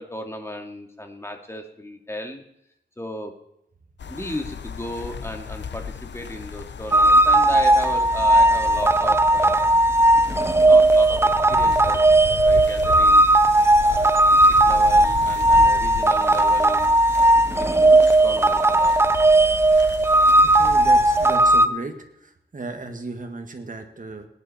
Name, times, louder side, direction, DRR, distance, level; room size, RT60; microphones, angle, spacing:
voice 1, 0.0-2.4 3.0-3.3 4.1-9.7 10.3-12.0 12.4-13.2 13.8-17.9 18.2-19.0, left 1 dB, 15° left, 4 dB, 2.2 m, -35 dB
sound 1, 4.0-21.4, left 7 dB, 80° left, 0.8 m, -35 dB
sound 2, 6.9-21.7, right 1 dB, 15° right, 0.6 m, -17 dB
voice 2, 20.4-22.0 22.2-24.3, right 3 dB, 45° right, 5 dB, 2.0 m, -35 dB
19.0 x 10.0 x 4.4 m, 0.78 s
wide cardioid pair, 105°, 18 cm